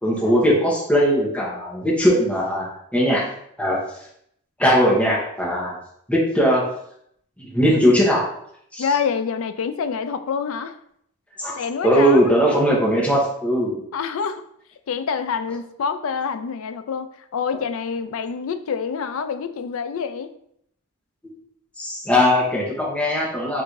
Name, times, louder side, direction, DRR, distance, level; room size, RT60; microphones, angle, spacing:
voice 1, 0.0-3.3 3.6-3.8 4.6-5.8 6.1-6.7 7.5-8.3 8.7-8.8 11.4-11.5 11.8-13.8 21.8-23.6, equal, 5° left, -5 dB, 0.9 m, -19 dB
voice 2, 8.8-10.8 11.6-12.3 13.9-14.4 14.9-20.3, left 6 dB, 70° left, 10 dB, 0.4 m, -26 dB
3.8 x 2.6 x 4.5 m, 0.70 s
head